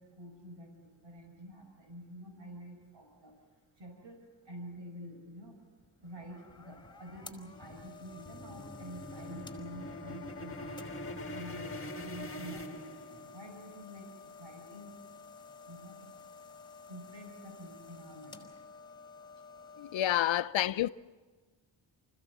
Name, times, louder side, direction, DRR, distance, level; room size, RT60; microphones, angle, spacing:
voice 1, 0.0-3.3 3.8-4.2 4.5-5.5 6.0-10.7 11.3-14.1 14.4-14.9 15.7-16.1 16.9-18.5, equal, 70° right, 5.5 m, -48 dB
sound 1, 6.0-20.0, left 4 dB, 10° left, 4.5 m, -52 dB
sound 2, 6.2-13.5, left 1 dB, 30° left, 1.8 m, -44 dB
voice 2, 19.8-20.9, left 12 dB, 85° left, 0.7 m, -29 dB
28.5 x 16.0 x 8.2 m
cardioid pair, 80°, 45 cm